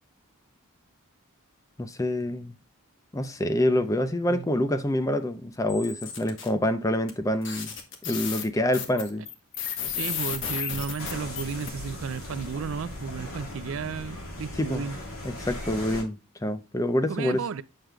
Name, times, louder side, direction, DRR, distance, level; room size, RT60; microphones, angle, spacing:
voice 1, 1.8-2.5 3.1-7.7 8.0-9.3 14.6-14.9 15.2-17.5, left 1 dB, 15° left, 0.5 m, -26 dB
sound 1, 5.7-6.5 7.1-7.2 7.4-11.7, left 8 dB, 55° left, 1.2 m, -33 dB
voice 2, 9.9-15.0 17.1-17.6, right 6 dB, 65° right, 0.4 m, -33 dB
sound 2, 11.0-16.0, left 1 dB, 80° left, 3.0 m, -38 dB
7.4 x 6.5 x 2.2 m
head